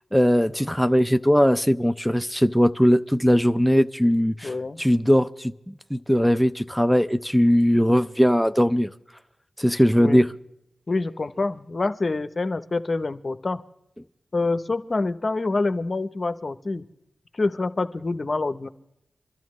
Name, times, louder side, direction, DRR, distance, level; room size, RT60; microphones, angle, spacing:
voice 1, 0.1-4.5 4.8-8.9 9.6-10.3, equal, ahead, 0.5 m, -20 dB
voice 2, 4.4-4.8 10.0-10.3 10.9-13.6 14.3-16.8 17.3-18.7, left 3 dB, 50° left, 0.8 m, -26 dB
26.0 x 12.0 x 3.1 m
cardioid pair, 40°, 0 cm